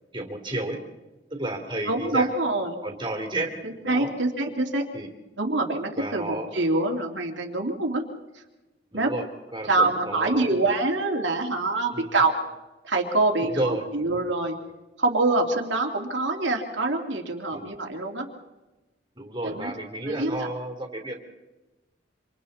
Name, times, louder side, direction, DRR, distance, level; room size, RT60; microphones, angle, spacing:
voice 1, 0.1-0.8 1.3-2.3 2.8-3.5 3.8-4.1 4.9-5.1 6.0-6.5 8.9-9.2 9.5-10.5 11.9-12.2 13.4-13.9 17.5-17.7 19.2-21.2, right 1 dB, 25° right, 2 dB, 3.5 m, -31 dB
voice 2, 1.9-2.8 3.6-4.8 5.4-8.0 8.9-9.1 9.7-12.3 12.8-14.5 15.0-18.3 19.4-19.7 20.1-20.5, right 2 dB, 65° right, 2 dB, 2.7 m, -25 dB
27.0 x 27.0 x 4.3 m, 1.1 s
head